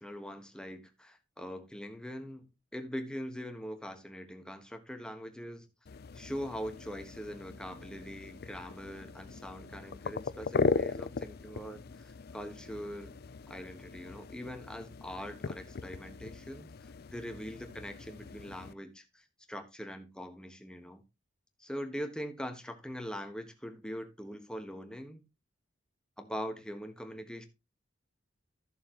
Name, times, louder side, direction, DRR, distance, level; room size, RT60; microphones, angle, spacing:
voice 1, 0.0-5.7 6.1-13.1 13.5-21.0 21.6-25.2 26.2-27.5, equal, 5° left, 1.4 m, -42 dB
sound 1, 5.9-18.7, left 4 dB, 55° left, 0.5 m, -38 dB
14.0 x 7.1 x 3.0 m
head